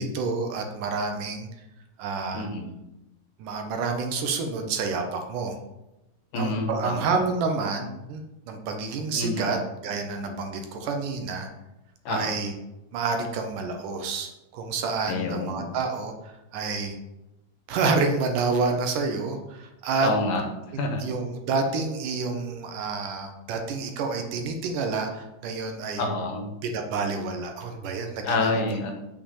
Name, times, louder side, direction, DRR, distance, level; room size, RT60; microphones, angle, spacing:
voice 1, 0.0-1.5 2.0-2.5 3.4-5.6 6.3-11.5 12.1-12.5 12.9-17.0 17.7-20.1 20.7-26.1 26.6-28.5, right 4 dB, 70° right, 4 dB, 2.4 m, -29 dB
voice 2, 2.3-2.7 6.3-7.2 9.1-9.5 12.1-12.3 15.1-15.7 20.0-20.4 20.7-21.1 26.0-26.5 28.2-28.9, left 2 dB, 75° left, 3 dB, 2.9 m, -27 dB
6.7 x 5.6 x 7.2 m, 0.95 s
omnidirectional pair, 4.0 m